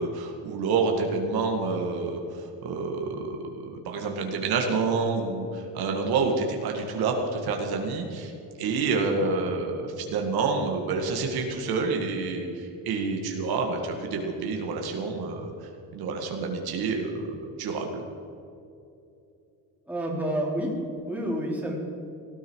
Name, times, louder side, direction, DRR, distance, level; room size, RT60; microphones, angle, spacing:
voice 1, 0.0-8.3 8.6-18.0, right 4 dB, 60° right, 2 dB, 2.1 m, -28 dB
voice 2, 19.9-20.7 21.1-21.7, right 1 dB, 5° right, -3 dB, 3.5 m, -29 dB
18.5 x 13.5 x 4.8 m, 2.7 s
cardioid pair, 145°, 41 cm